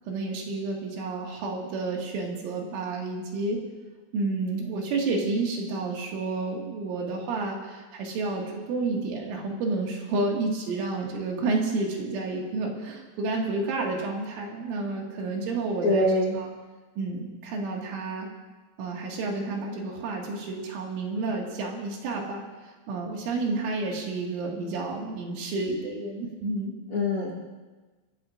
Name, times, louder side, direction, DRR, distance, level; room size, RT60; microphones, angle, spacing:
voice 1, 0.1-3.6 4.1-16.1 16.3-16.5 17.0-18.3 18.8-26.8, right 3 dB, 70° right, -1 dB, 4.3 m, -30 dB
voice 2, 15.8-16.4 26.9-27.3, left 1 dB, 50° left, -4 dB, 1.7 m, -23 dB
29.5 x 14.5 x 2.6 m, 1.3 s
omnidirectional pair, 6.0 m